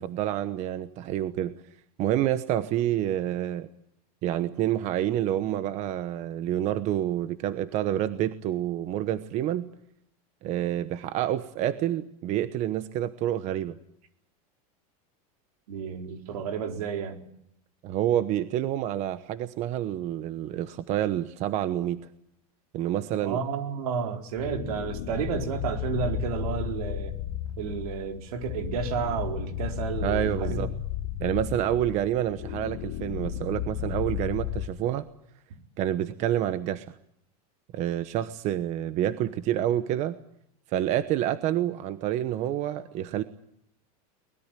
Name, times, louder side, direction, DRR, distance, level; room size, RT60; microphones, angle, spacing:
voice 1, 0.0-1.5 2.0-3.7 4.2-9.7 10.4-13.8 17.8-22.0 22.7-23.4 30.0-30.7 31.2-35.1 35.8-36.9 37.7-40.2 40.7-43.2, right 12 dB, 35° right, 12 dB, 1.1 m, -28 dB
voice 2, 15.7-17.2 23.2-27.2 27.6-30.7, right 6 dB, 75° right, 5 dB, 4.2 m, -31 dB
sound 1, 24.4-34.7, left 11 dB, 55° left, 2.9 m, -33 dB
24.0 x 20.5 x 9.1 m, 0.72 s
supercardioid pair, 155°, 19 cm